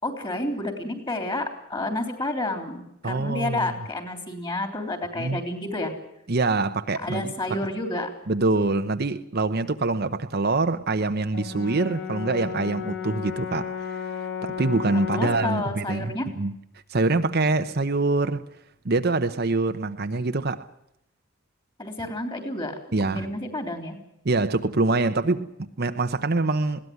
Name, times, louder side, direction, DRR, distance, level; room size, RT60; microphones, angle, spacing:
voice 1, 0.0-5.9 7.0-8.1 14.9-16.3 21.8-22.8 23.1-24.0, left 2 dB, 20° left, 3.4 m, -30 dB
voice 2, 3.0-3.7 5.2-5.4 6.3-7.6 8.3-14.1 14.4-16.6 16.9-18.4 18.8-20.7 22.9-23.3 24.2-26.9, right 3 dB, 50° right, 0.9 m, -25 dB
Brass instrument, 11.3-15.6, left 7 dB, 60° left, 5.3 m, -33 dB
21.0 x 16.5 x 9.5 m
head